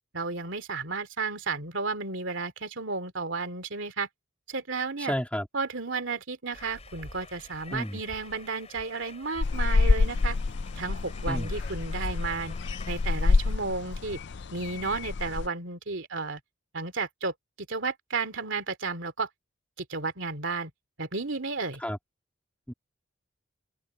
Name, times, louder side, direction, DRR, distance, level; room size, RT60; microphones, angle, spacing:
voice 1, 0.1-4.1 4.5-5.1 5.5-10.4 10.8-12.5 12.9-14.2 14.5-16.4 16.7-19.3 19.8-20.7 21.0-21.8, right 4 dB, 65° right, 2.9 m, -33 dB
voice 2, 5.0-5.5 7.7-8.0 11.3-11.5 21.8-22.0 22.7-22.8, equal, 5° left, 3.4 m, -31 dB
sound 1, 6.5-13.5, left 3 dB, 30° left, 5.9 m, -49 dB
sound 2, 9.4-15.5, left 3 dB, 55° left, 0.5 m, -27 dB
open air
head